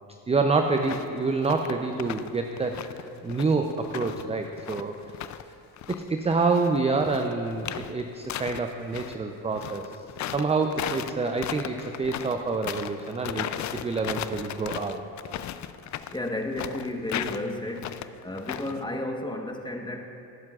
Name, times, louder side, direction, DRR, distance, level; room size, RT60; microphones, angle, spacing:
voice 1, 0.3-4.9 5.9-9.9 10.3-15.0, right 3 dB, 15° right, 5 dB, 0.5 m, -27 dB
sound 1, 0.8-1.1 1.4-2.3 2.6-5.4 5.8-9.1 9.5-18.8, left 11 dB, 45° left, 0.4 m, -36 dB
voice 2, 16.1-17.9 18.2-20.0, left 1 dB, 10° left, 2 dB, 1.2 m, -32 dB
18.5 x 7.4 x 2.4 m, 2.7 s
supercardioid pair, 75°, 44 cm